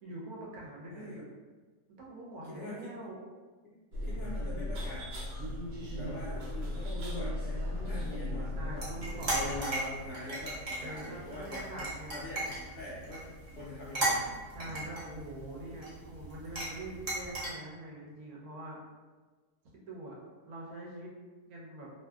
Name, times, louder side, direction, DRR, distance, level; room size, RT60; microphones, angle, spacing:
voice 1, 0.0-1.2 2.0-3.2 8.5-9.4 10.8-12.1 14.5-18.8 19.7-20.2 20.5-21.1 21.5-21.9, right 1 dB, 65° right, -3 dB, 1.1 m, -44 dB
voice 2, 0.9-1.2 2.4-3.0 3.6-5.3 5.9-8.9 9.3-14.3, left 1 dB, 85° left, -7 dB, 0.6 m, -43 dB
sound 1, 3.9-9.6, left 1 dB, 90° right, 1.3 m, -36 dB
sound 2, 8.8-17.5, right 1 dB, 35° right, 0.5 m, -37 dB
2.6 x 2.6 x 2.3 m, 1.4 s
omnidirectional pair, 1.8 m